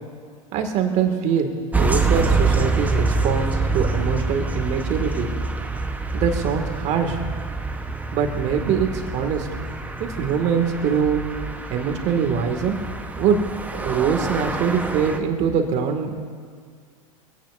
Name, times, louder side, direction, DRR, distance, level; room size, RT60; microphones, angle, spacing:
voice 1, 0.5-5.3 6.1-7.2 8.1-9.5 10.0-11.2 11.7-12.8 13.2-13.4 13.7-16.1, right 7 dB, 40° right, 5 dB, 2.4 m, -23 dB
sound 1, 1.7-15.2, right 3 dB, 10° right, 1.2 m, -26 dB
24.5 x 17.0 x 2.8 m, 2.1 s
hypercardioid pair, 90°, 18 cm